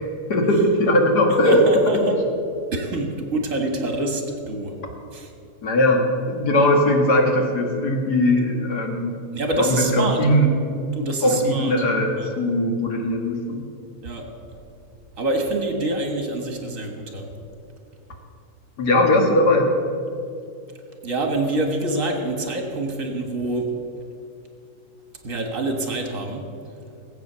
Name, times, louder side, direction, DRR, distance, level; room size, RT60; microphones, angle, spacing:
voice 1, 0.3-1.6 5.6-9.2 9.6-10.5 11.2-13.6 18.8-19.7, left 1 dB, 90° left, 2 dB, 2.3 m, -19 dB
voice 2, 1.4-2.2 2.7-4.7 5.1-5.3 9.3-10.2 10.9-11.7 12.2-12.3 14.0-14.3 15.2-17.3 21.0-23.7 25.2-26.5, right 2 dB, 55° right, 3 dB, 2.1 m, -26 dB
18.0 x 8.4 x 6.9 m, 2.5 s
omnidirectional pair, 1.7 m